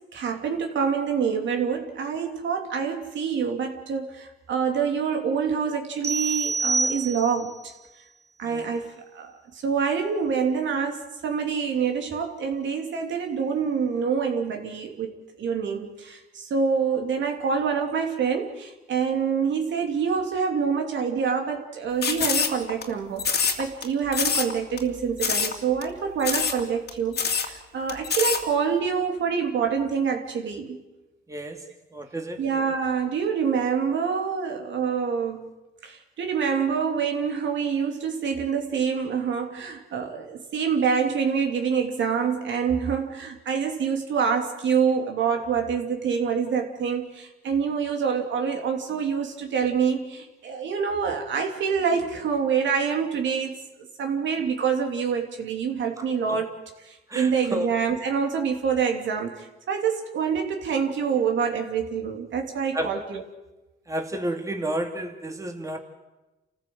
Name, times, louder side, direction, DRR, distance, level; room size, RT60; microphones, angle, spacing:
voice 1, 0.1-7.7 8.4-15.1 15.4-30.8 32.4-35.4 35.8-53.6 54.0-56.5 56.8-63.2, right 6 dB, 70° right, 3 dB, 2.9 m, -26 dB
sound 1, 6.0-7.6, right 3 dB, 35° right, 2.1 m, -26 dB
sound 2, 22.0-22.8 23.2-23.8 24.1-24.5 24.8-24.9 25.2-25.6 25.8-25.9 26.2-26.6 26.9-27.0 27.1-27.5 27.9-28.4, left 6 dB, 55° left, 2.7 m, -24 dB
voice 2, 31.3-31.6 31.9-32.4 56.3-56.4 57.1-57.7 62.7-62.9 63.9-65.8, right 1 dB, 15° right, 3 dB, 2.4 m, -31 dB
28.0 x 15.0 x 7.8 m, 1.1 s
cardioid pair, 90°, 20 cm